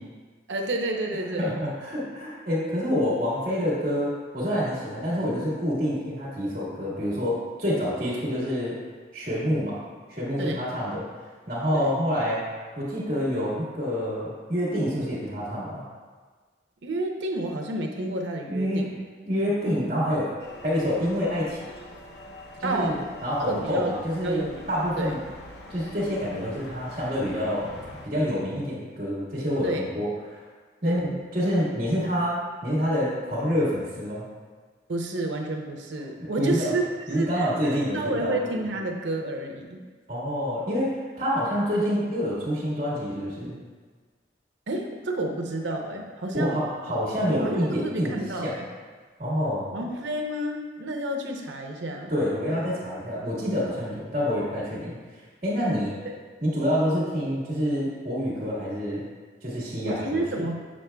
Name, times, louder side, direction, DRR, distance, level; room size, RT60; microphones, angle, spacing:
voice 1, 0.5-1.5 10.4-10.7 11.7-11.9 16.8-18.9 22.6-23.0 23.5-23.9 24.2-24.6 25.0-25.2 29.6-29.9 30.8-31.1 34.9-36.8 37.1-39.8 44.7-46.6 47.3-48.5 49.7-52.1 56.0-56.1 59.8-60.6, right 2 dB, 85° right, 2 dB, 0.7 m, -30 dB
voice 2, 1.4-8.8 9.1-9.8 10.1-11.1 11.5-12.4 12.7-15.8 18.4-18.9 19.2-20.3 20.6-21.6 22.6-25.2 25.7-27.7 28.0-30.4 30.8-34.3 36.2-36.8 37.1-38.4 40.1-43.6 46.3-48.6 49.2-49.7 52.1-55.9 56.4-59.0 59.4-60.2, equal, 40° right, -8 dB, 1.5 m, -27 dB
sound 1, 20.4-28.1, left 1 dB, 70° left, 0.7 m, -44 dB
7.0 x 6.3 x 2.3 m, 1.4 s
head